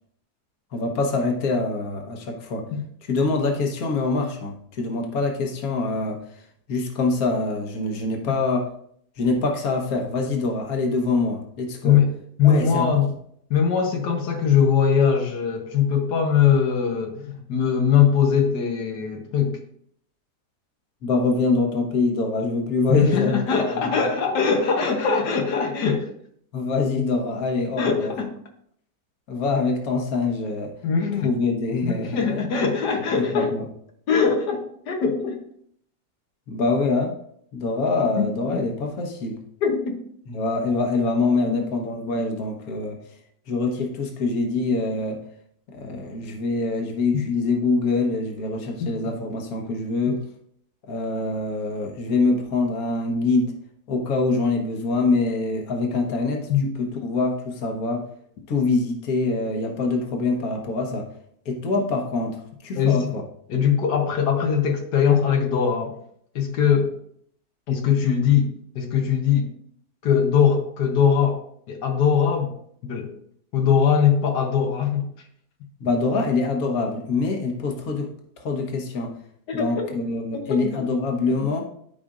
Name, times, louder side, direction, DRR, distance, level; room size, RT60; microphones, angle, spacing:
voice 1, 0.7-2.7 3.0-6.4 6.7-8.7 9.2-12.0 12.4-12.9 21.0-23.4 23.7-23.8 26.5-28.1 29.3-30.7 31.2-32.2 33.2-33.7 36.5-37.2 37.5-39.4 40.3-43.0 43.5-45.2 45.7-50.2 50.9-53.5 53.9-56.5 56.8-58.1 58.5-61.1 61.5-63.2 75.8-79.2 79.5-81.6, left 3 dB, 65° left, 2 dB, 1.6 m, -24 dB
voice 2, 12.4-13.1 13.5-19.6 22.9-26.1 27.8-28.3 30.8-31.3 31.8-33.5 34.1-35.4 38.2-38.7 39.6-40.0 41.4-41.6 48.8-48.9 56.5-56.7 62.8-63.1 63.5-66.0 66.4-66.9 67.7-68.5 68.8-69.5 70.0-71.4 71.7-72.5 72.8-73.1 73.5-75.1 79.5-79.9 80.3-80.9 81.3-81.4, left 7 dB, 90° left, 2 dB, 1.6 m, -21 dB
12.5 x 5.1 x 2.5 m, 0.66 s
omnidirectional pair, 1.7 m